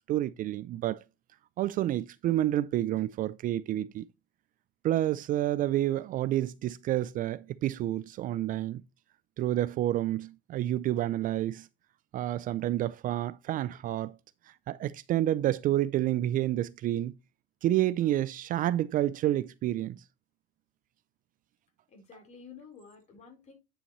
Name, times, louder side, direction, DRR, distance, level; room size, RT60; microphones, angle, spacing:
voice 1, 0.1-1.0 1.6-4.1 4.8-8.8 9.4-11.7 12.1-14.2 14.7-17.1 17.6-20.0, right 13 dB, 45° right, 0.4 m, -29 dB
voice 2, 21.9-23.5, left 5 dB, 35° left, 4.0 m, -51 dB
9.8 x 5.6 x 3.1 m
cardioid pair, 130°, 20 cm